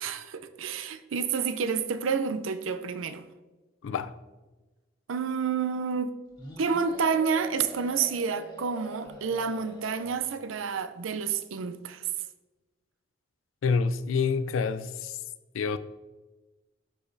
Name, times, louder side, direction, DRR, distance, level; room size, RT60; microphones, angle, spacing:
voice 1, 0.0-3.2 5.1-6.1 6.6-12.1, right 6 dB, 85° right, 0.5 m, -29 dB
voice 2, 3.8-4.1 13.6-15.2 15.5-15.8, left 5 dB, 90° left, 0.4 m, -27 dB
sound 1, 6.4-10.5, left 1 dB, 25° left, 1.5 m, -44 dB
11.5 x 4.9 x 2.6 m
head